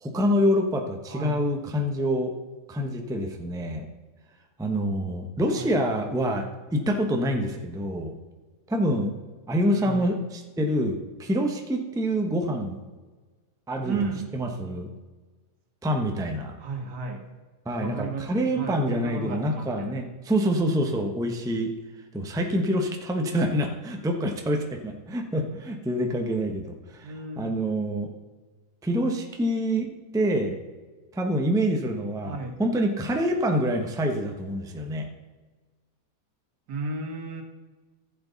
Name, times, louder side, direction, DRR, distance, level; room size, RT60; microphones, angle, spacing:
voice 1, 0.0-2.3 2.7-3.9 4.6-6.4 6.7-8.1 8.7-9.1 9.5-12.8 13.7-14.0 14.3-14.9 15.8-16.5 17.6-21.7 22.1-28.1 28.8-30.6 31.1-35.1, equal, 5° right, 3 dB, 0.7 m, -26 dB
voice 2, 1.1-1.4 5.5-5.8 9.8-10.1 13.8-14.3 16.6-17.3 17.8-20.0 27.0-27.6 32.2-32.5 36.7-37.4, right 3 dB, 75° right, 4 dB, 2.0 m, -34 dB
14.5 x 7.9 x 4.0 m, 1.3 s
omnidirectional pair, 1.8 m